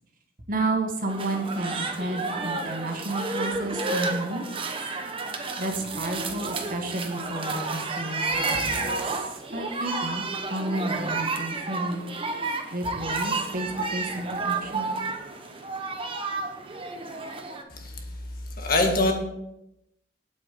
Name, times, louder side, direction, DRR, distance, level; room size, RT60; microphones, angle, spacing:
voice 1, 0.5-4.5 4.8-5.1 5.6-9.2 9.5-10.2 10.5-12.1 12.7-14.9, right 2 dB, 50° right, 2 dB, 1.8 m, -31 dB
sound 1, 1.1-17.6, right 3 dB, 30° right, 1.1 m, -31 dB
voice 2, 18.6-19.1, left 2 dB, 55° left, 3 dB, 1.8 m, -23 dB
8.5 x 8.0 x 5.3 m, 0.85 s
head